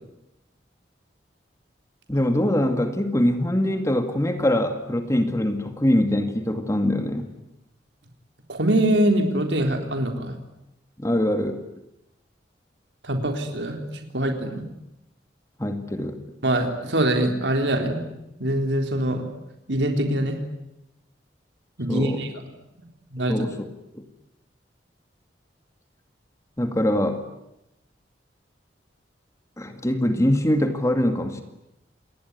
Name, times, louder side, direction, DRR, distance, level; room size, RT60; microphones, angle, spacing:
voice 1, 2.1-7.3 11.0-11.6 15.6-16.2 21.9-22.2 23.3-23.6 23.9-24.0 26.6-27.3 29.6-31.4, left 1 dB, 15° left, 7 dB, 2.2 m, -23 dB
voice 2, 8.5-10.4 13.0-13.8 14.1-14.7 16.4-18.0 18.4-19.3 19.7-20.4 21.8-22.3 23.1-23.5, right 1 dB, 80° right, 4 dB, 3.9 m, -23 dB
28.5 x 21.0 x 9.7 m, 0.88 s
head